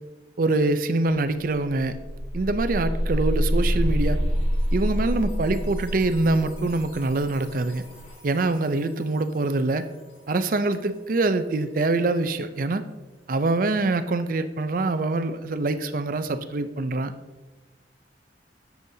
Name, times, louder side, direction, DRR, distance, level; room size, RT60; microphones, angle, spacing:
voice 1, 0.4-2.0 2.3-4.2 4.7-7.8 8.2-9.9 10.3-12.8 13.3-17.1, right 2 dB, 50° right, 10 dB, 0.5 m, -24 dB
sound 1, 1.1-1.2 1.5-8.3, equal, 30° left, 1.5 m, -27 dB
9.9 x 7.1 x 2.7 m, 1.2 s
head